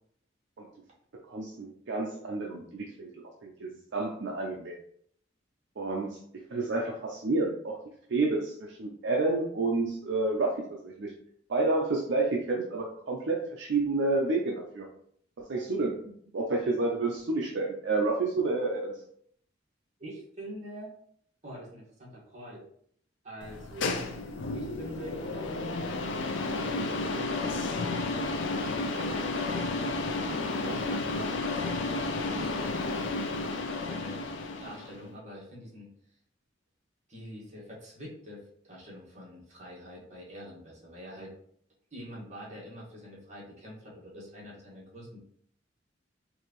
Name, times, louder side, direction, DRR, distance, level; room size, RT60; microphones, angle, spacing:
voice 1, 1.3-4.8 5.8-6.2 6.5-7.8 8.1-11.1 11.5-14.9 15.4-19.0, right 3 dB, 65° right, 0 dB, 0.5 m, -30 dB
voice 2, 20.0-20.9 21.4-22.6 23.2-23.9 24.5-26.0 26.6-27.9 28.6-29.6 30.5-31.6 32.2-34.2 34.6-35.9 37.1-41.3 41.9-45.2, equal, 40° right, -6 dB, 1.7 m, -45 dB
sound 1, 23.4-35.0, left 3 dB, 70° left, 0.5 m, -32 dB
4.6 x 2.6 x 3.0 m, 0.65 s
head